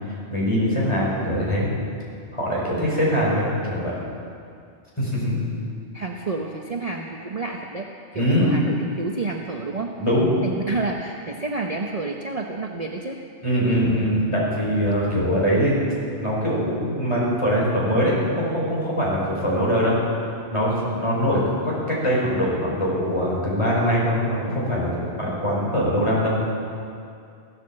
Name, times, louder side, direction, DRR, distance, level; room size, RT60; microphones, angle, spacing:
voice 1, 0.3-1.7 2.3-3.9 5.0-5.3 8.1-8.5 10.0-10.3 13.4-15.8 16.2-20.0 20.5-26.4, equal, 25° left, -6 dB, 5.1 m, -22 dB
voice 2, 5.3-9.9 10.4-13.2, right 3 dB, 35° right, 1 dB, 0.9 m, -30 dB
15.0 x 12.5 x 7.6 m, 2.4 s
omnidirectional pair, 1.2 m